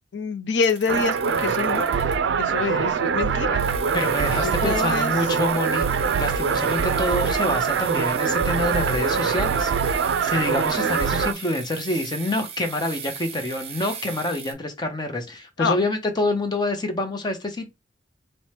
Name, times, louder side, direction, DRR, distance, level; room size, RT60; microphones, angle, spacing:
voice 1, 0.1-1.9 2.4-3.6 4.4-5.1 15.6-15.8, left 5 dB, 80° left, 0.5 m, -26 dB
sound 1, 0.6-2.4 3.6-14.5, right 7 dB, 35° right, 0.8 m, -38 dB
sound 2, 0.9-11.3, right 6 dB, 85° right, 0.4 m, -23 dB
voice 2, 3.9-5.8 6.1-9.7 10.2-17.7, left 1 dB, 25° left, 0.6 m, -27 dB
4.3 x 2.1 x 3.2 m
head